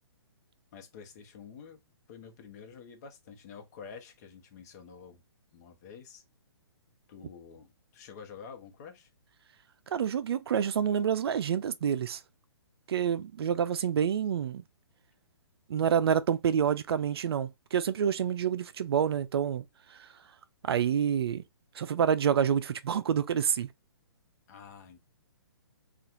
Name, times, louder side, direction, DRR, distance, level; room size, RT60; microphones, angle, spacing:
voice 1, 0.7-1.8 2.1-5.2 5.5-6.2 7.1-9.1 24.5-25.0, left 6 dB, 40° left, 0.9 m, -48 dB
voice 2, 9.9-12.2 12.9-14.6 15.7-19.6 19.9-20.1 20.6-21.4 21.7-23.7, right 8 dB, 65° right, 0.4 m, -28 dB
4.2 x 2.5 x 2.5 m
hypercardioid pair, 150°, 14 cm